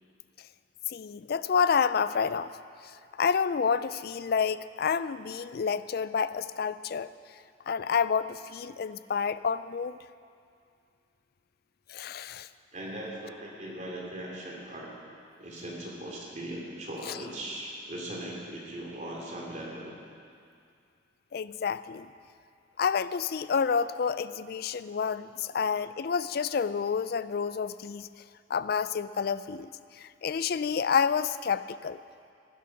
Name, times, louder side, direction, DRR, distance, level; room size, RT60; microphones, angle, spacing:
voice 1, 0.9-2.5 3.2-7.1 7.7-10.0 11.9-12.5 17.1-17.2 21.3-22.1 22.8-28.1 28.5-32.0, left 6 dB, 55° left, 15 dB, 0.4 m, -29 dB
voice 2, 12.7-14.9 15.4-19.9, right 1 dB, 40° right, -3 dB, 2.9 m, -39 dB
16.0 x 11.0 x 5.9 m, 2.3 s
head